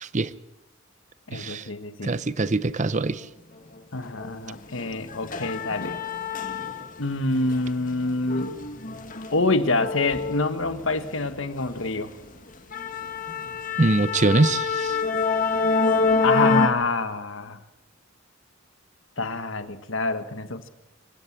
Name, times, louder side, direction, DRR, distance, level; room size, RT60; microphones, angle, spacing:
voice 1, 0.0-0.3 1.3-1.7 2.0-3.3 13.8-15.0, right 2 dB, 35° right, 16 dB, 0.7 m, -23 dB
voice 2, 1.3-2.1 3.9-6.0 7.0-8.6 9.3-12.1 16.2-17.6 19.2-20.7, left 3 dB, 65° left, 10 dB, 1.5 m, -26 dB
sound 1, 4.2-4.3 4.7-7.1 7.4-11.2 11.6-11.8 12.2-12.3 12.7-16.7, left 4 dB, 40° left, 1.9 m, -26 dB
25.5 x 16.5 x 7.5 m, 0.96 s
head